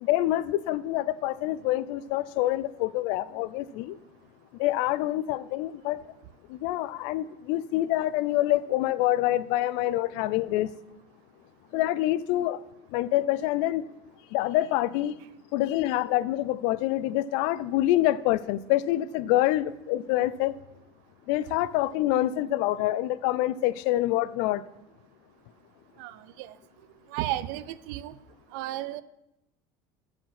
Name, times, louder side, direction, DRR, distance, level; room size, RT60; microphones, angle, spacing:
voice 1, 0.0-4.0 4.6-6.0 6.5-10.7 11.7-12.6 12.9-13.9 14.3-15.1 15.5-20.5 21.3-24.6, left 15 dB, 65° left, 0.4 m, -26 dB
voice 2, 26.0-26.5 27.1-28.2 28.5-29.0, right 14 dB, 75° right, 0.5 m, -34 dB
13.0 x 4.9 x 5.9 m
cardioid pair, 170°, 10 cm